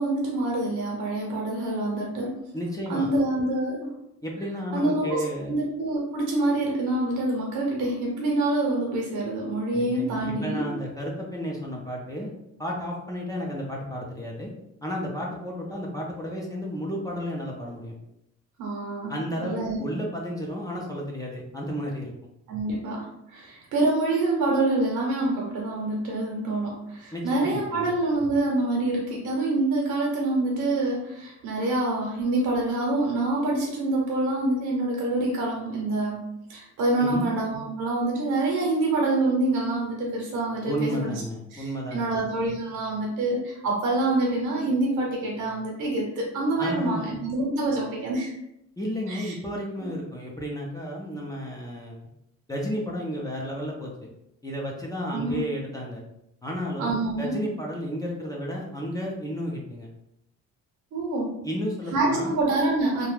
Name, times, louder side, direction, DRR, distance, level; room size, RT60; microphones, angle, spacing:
voice 1, 0.0-2.3 2.9-4.0 4.7-10.7 18.6-19.1 19.4-19.8 22.5-36.2 36.5-41.2 41.5-48.3 49.1-49.3 55.1-55.4 56.8-57.3 60.9-61.3 61.9-63.1, right 2 dB, 85° right, -2 dB, 0.8 m, -26 dB
voice 2, 2.5-3.1 4.2-5.5 9.7-12.3 12.6-14.5 14.8-17.9 19.1-22.1 27.1-27.9 37.0-37.2 40.6-42.2 46.6-47.2 48.8-52.0 52.5-54.1 54.4-56.0 56.4-59.9 61.4-62.3, equal, 10° left, -3 dB, 0.5 m, -32 dB
2.4 x 2.2 x 3.2 m, 0.82 s
cardioid pair, 90°, 30 cm